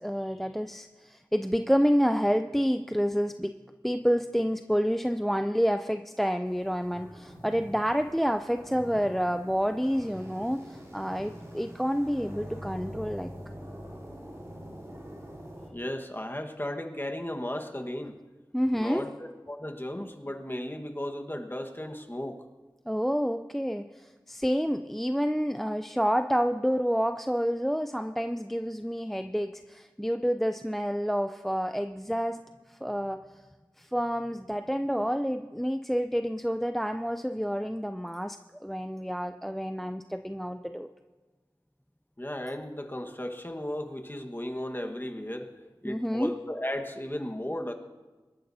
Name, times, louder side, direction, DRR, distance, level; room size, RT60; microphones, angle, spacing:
voice 1, 0.0-3.5 3.8-13.3 18.5-19.0 22.9-32.4 32.7-33.2 33.8-40.9 45.8-46.3, equal, 5° left, 7 dB, 0.5 m, -28 dB
sound 1, 6.5-15.7, equal, 40° right, 4.7 m, -44 dB
voice 2, 15.7-18.2 18.7-22.4 42.2-45.5 45.8-47.7, left 1 dB, 25° left, 4 dB, 1.4 m, -35 dB
25.0 x 12.5 x 2.8 m, 1.3 s
wide cardioid pair, 45°, 8 cm